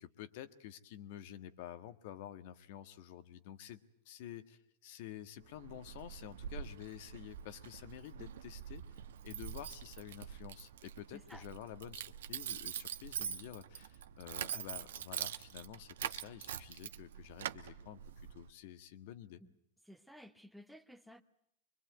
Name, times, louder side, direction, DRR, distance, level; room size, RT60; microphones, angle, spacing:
voice 1, 0.0-8.8 9.2-12.0 12.3-19.4, left 11 dB, 60° left, 1.5 m, -50 dB
Keys jangling, 5.4-18.5, right 10 dB, 80° right, 1.0 m, -44 dB
voice 2, 11.1-11.5 19.4-19.5 19.8-21.2, equal, ahead, 1.2 m, -55 dB
24.0 x 21.5 x 9.2 m
supercardioid pair, 135°, 0 cm